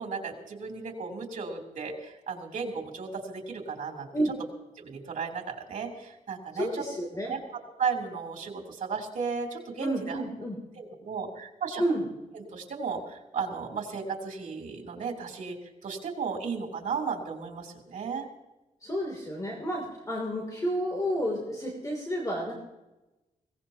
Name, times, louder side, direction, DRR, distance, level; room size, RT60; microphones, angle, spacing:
voice 1, 0.0-4.1 4.8-6.9 7.3-7.4 7.8-10.2 10.7-11.8 12.3-15.6 15.8-18.3, right 5 dB, 75° right, 2 dB, 3.4 m, -35 dB
voice 2, 6.5-7.3 9.8-10.6 11.8-12.0 18.8-22.5, equal, 25° left, -1 dB, 3.0 m, -30 dB
22.0 x 18.0 x 2.9 m, 1.0 s
wide cardioid pair, 120°, 13 cm